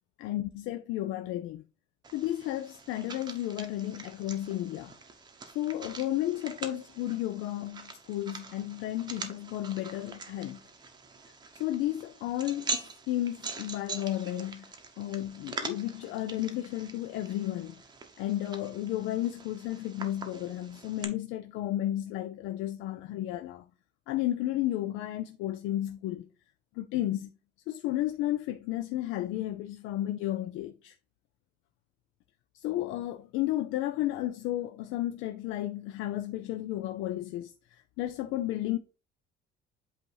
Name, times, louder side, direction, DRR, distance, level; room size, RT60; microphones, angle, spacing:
voice 1, 0.2-1.6 2.1-4.9 5.5-10.6 11.5-17.8 18.2-23.6 24.1-26.3 26.7-27.3 27.7-30.9 32.5-38.8, left 14 dB, 80° left, 0.5 m, -33 dB
sound 1, 2.0-21.0, right 4 dB, 20° right, 0.7 m, -43 dB
8.1 x 2.8 x 4.6 m
cardioid pair, 175°, 20 cm